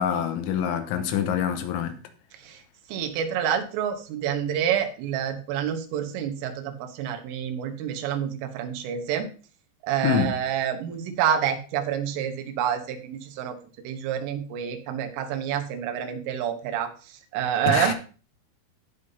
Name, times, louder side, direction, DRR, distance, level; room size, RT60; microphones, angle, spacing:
voice 1, 0.0-2.0 10.0-10.3 17.7-17.9, left 8 dB, 80° left, 3.3 m, -25 dB
voice 2, 2.9-9.3 9.8-13.6 13.9-17.9, right 9 dB, 85° right, 3.7 m, -28 dB
16.5 x 5.7 x 2.8 m
omnidirectional pair, 5.6 m